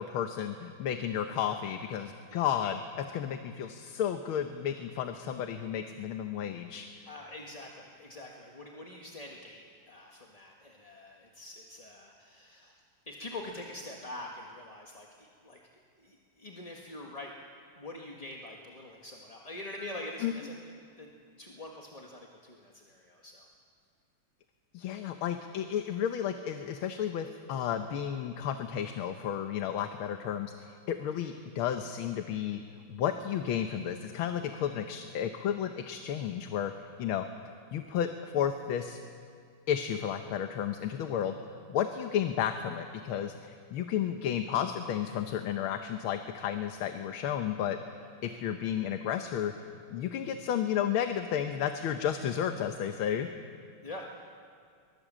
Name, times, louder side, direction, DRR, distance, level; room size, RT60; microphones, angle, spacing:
voice 1, 0.0-6.9 20.2-20.3 24.7-32.6 32.9-36.7 37.0-37.3 37.7-39.0 39.7-41.3 41.7-47.8 48.2-49.5 49.9-53.3, left 9 dB, 80° left, 7 dB, 1.8 m, -32 dB
voice 2, 7.1-12.7 13.1-15.6 16.0-17.3 17.7-20.6 21.0-21.1 21.4-23.5 53.8-54.0, left 1 dB, 20° left, 0 dB, 1.3 m, -45 dB
23.5 x 21.0 x 7.5 m, 2.2 s
omnidirectional pair, 2.3 m